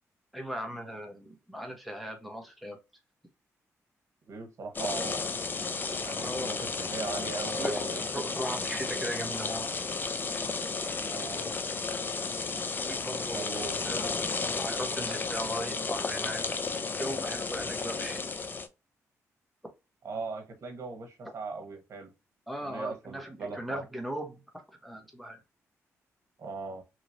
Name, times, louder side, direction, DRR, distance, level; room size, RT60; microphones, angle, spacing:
voice 1, 0.3-2.8 6.2-6.6 7.6-9.7 12.8-14.1 14.6-16.6 17.0-18.2 22.5-24.4 24.8-25.4, equal, ahead, 1.0 m, -38 dB
voice 2, 4.3-5.3 6.0-8.0 11.0-11.5 13.3-13.8 20.0-22.1 22.6-23.8 26.4-26.8, right 4 dB, 60° right, 1.0 m, -39 dB
sound 1, 4.7-18.7, left 4 dB, 35° left, 0.5 m, -33 dB
3.0 x 2.8 x 2.6 m
cardioid pair, 85°, 6 cm